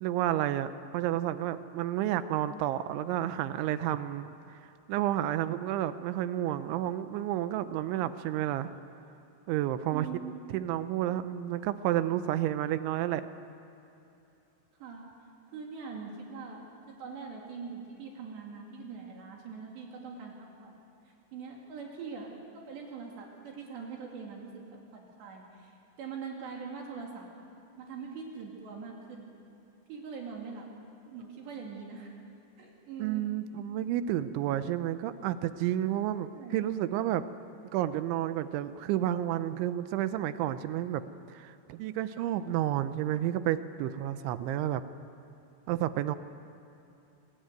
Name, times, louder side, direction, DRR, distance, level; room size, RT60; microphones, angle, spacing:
voice 1, 0.0-4.3 4.9-8.7 9.5-10.1 10.5-13.3 33.0-37.2 37.7-44.8 45.7-46.2, right 12 dB, 80° right, 12 dB, 2.9 m, -31 dB
voice 2, 9.9-10.4 14.8-15.1 15.5-16.6 16.9-20.3 20.6-20.7 21.1-22.3 22.6-27.3 27.8-29.3 29.9-30.7 31.1-32.1 32.6-33.3 36.3-36.6, right 5 dB, 60° right, -1 dB, 4.5 m, -42 dB
26.0 x 20.5 x 9.4 m, 2.8 s
omnidirectional pair, 6.0 m